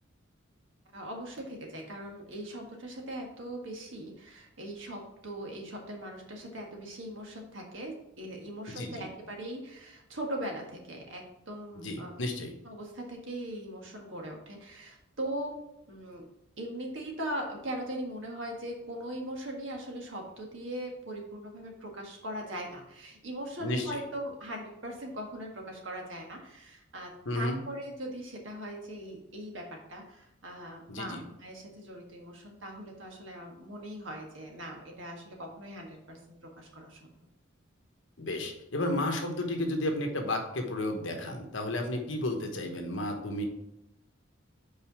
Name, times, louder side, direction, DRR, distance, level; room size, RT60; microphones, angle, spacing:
voice 1, 0.9-12.3 12.6-15.6 15.9-16.3 16.6-37.1, right 1 dB, 65° right, 1 dB, 1.6 m, -40 dB
voice 2, 8.7-9.1 11.8-12.5 23.6-23.9 27.2-27.6 30.9-31.2 38.2-43.4, left 1 dB, 65° left, 4 dB, 1.2 m, -32 dB
5.3 x 4.9 x 6.0 m, 0.85 s
head